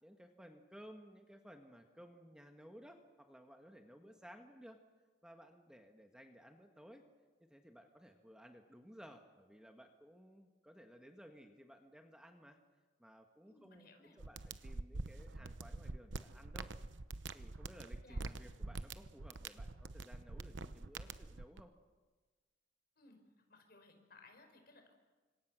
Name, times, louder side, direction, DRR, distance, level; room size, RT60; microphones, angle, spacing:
voice 1, 0.0-4.8 5.2-7.0 7.4-12.6 13.0-16.7 17.3-21.7, equal, 5° right, 4 dB, 1.5 m, -58 dB
voice 2, 13.4-14.2 18.0-18.4 23.0-23.2 23.5-24.9, left 3 dB, 55° left, 4 dB, 5.2 m, -62 dB
sound 1, 14.2-21.6, right 3 dB, 85° right, 0.9 m, -45 dB
29.5 x 25.5 x 6.3 m, 1.3 s
head